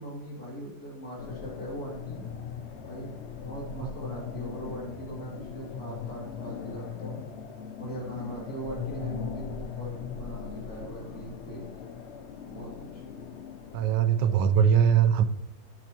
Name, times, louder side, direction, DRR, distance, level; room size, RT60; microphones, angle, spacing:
voice 1, 0.0-2.2 2.8-7.2 7.8-11.6 12.5-13.0, right 1 dB, 50° left, -4 dB, 3.5 m, -40 dB
sound 1, 1.2-14.6, left 7 dB, 80° left, 0.6 m, -40 dB
voice 2, 13.7-15.2, right 8 dB, 75° right, 12 dB, 1.3 m, -21 dB
13.5 x 8.5 x 3.0 m, 0.91 s
omnidirectional pair, 2.1 m